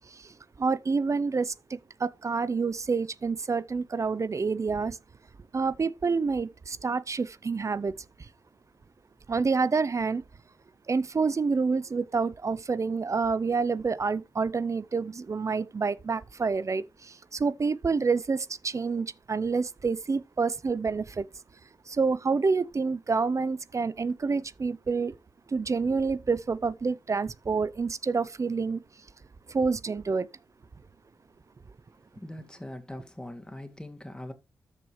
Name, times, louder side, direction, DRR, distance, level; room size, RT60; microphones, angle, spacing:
voice 1, 0.0-5.0 5.5-7.9 8.2-8.3 9.3-10.2 10.9-21.3 21.9-25.1 25.5-28.8 29.5-30.3, right 4 dB, 40° right, 0.6 m, -28 dB
voice 2, 32.1-34.3, left 1 dB, 10° left, 2.4 m, -41 dB
13.5 x 4.8 x 3.1 m
supercardioid pair, 45°, 8 cm